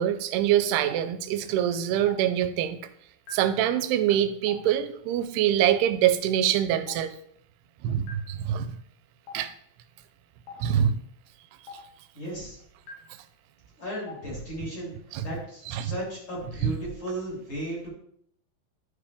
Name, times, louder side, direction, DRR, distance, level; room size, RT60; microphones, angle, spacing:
voice 1, 0.0-2.8 3.3-7.1 7.8-8.7 9.3-9.5 10.6-11.0 15.1-15.2 15.7-15.9 16.6-16.8, right 10 dB, 85° right, 11 dB, 2.6 m, -24 dB
Stream, 0.9-1.0 2.1-2.2 3.3-3.4 4.5-4.6 5.7-5.8 6.9-7.0 8.1-8.2 9.3-9.4 10.5-10.6 11.7-11.8 12.9-13.0 14.1-14.2 15.3-15.4, left 6 dB, 80° left, 3.3 m, -40 dB
voice 2, 12.1-12.6 13.8-17.9, right 1 dB, 30° left, -6 dB, 3.8 m, -35 dB
12.0 x 5.0 x 3.5 m, 0.67 s
omnidirectional pair, 4.6 m